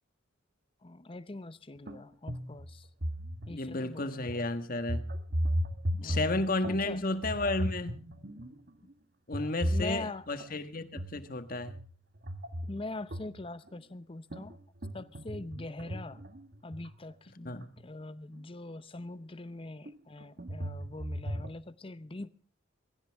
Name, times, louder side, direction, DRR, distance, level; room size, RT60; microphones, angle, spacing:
voice 1, 0.8-2.9 3.5-4.5 6.0-6.4 6.7-7.0 9.3-10.2 12.7-14.5 14.9-16.2 16.6-22.3, left 2 dB, 25° left, 0.7 m, -43 dB
sound 1, 1.9-2.0 2.3-3.8 4.3-4.5 4.8-6.9 7.2-8.7 9.3-10.5 10.9-11.3 11.6-13.7 14.3-16.9 17.8-17.9 18.4-18.5 19.9-21.5, equal, 50° right, 1.5 m, -35 dB
voice 2, 3.5-5.0 6.0-8.0 9.3-11.8 17.4-17.6, left 2 dB, 45° left, 1.6 m, -32 dB
23.0 x 16.0 x 3.5 m
head